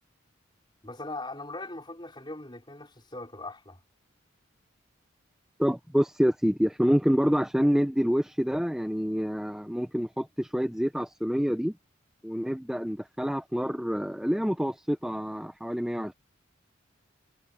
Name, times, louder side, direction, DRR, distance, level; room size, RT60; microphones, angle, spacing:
voice 1, 0.8-3.8, left 2 dB, 25° left, 4.6 m, -40 dB
voice 2, 5.6-11.7 12.2-16.1, equal, 5° right, 0.8 m, -27 dB
head